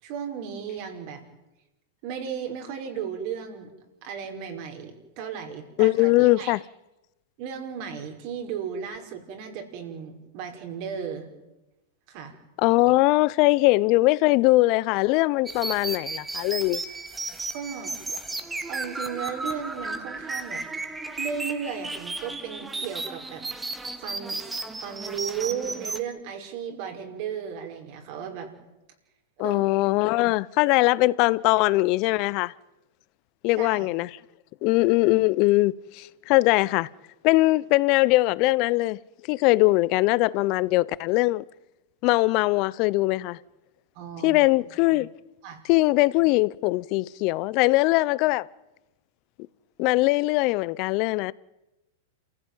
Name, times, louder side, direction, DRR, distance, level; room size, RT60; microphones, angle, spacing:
voice 1, 0.0-1.2 2.0-3.7 4.0-6.6 7.4-11.3 12.1-12.3 17.5-17.9 18.7-20.6 21.2-23.4 23.7-24.4 24.7-28.5 29.4-29.7 33.6-33.9 44.0-44.5 45.4-45.6, right 7 dB, 55° right, 5.3 m, -35 dB
voice 2, 5.8-6.6 12.6-16.8 29.4-32.5 33.4-34.1 34.6-36.9 37.2-39.0 39.3-41.4 42.0-43.4 44.2-45.1 45.7-48.5 49.8-51.3, left 21 dB, 50° left, 0.7 m, -21 dB
sound 1, 15.5-26.0, right 3 dB, 10° right, 1.9 m, -34 dB
28.0 x 15.5 x 9.4 m
hypercardioid pair, 115°, 0 cm